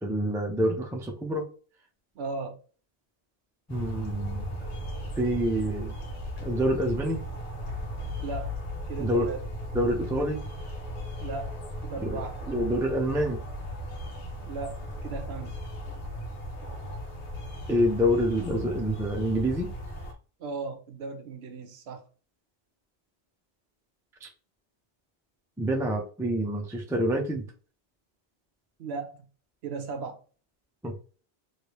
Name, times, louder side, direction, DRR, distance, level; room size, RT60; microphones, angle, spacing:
voice 1, 0.0-1.5 3.7-4.5 5.2-5.9 6.4-7.2 9.0-9.3 9.7-10.4 12.0-12.2 12.5-13.4 17.7-19.7 24.2-24.3 25.6-27.5 30.8-30.9, equal, 5° right, 0.3 m, -27 dB
voice 2, 2.2-2.6 8.2-8.5 8.9-9.5 11.2-11.6 11.8-12.4 14.4-15.6 20.4-22.0 28.8-29.2 29.6-30.2, right 4 dB, 65° right, 0.9 m, -36 dB
sound 1, 3.7-20.1, equal, 75° left, 1.1 m, -37 dB
3.2 x 2.7 x 3.0 m
omnidirectional pair, 1.2 m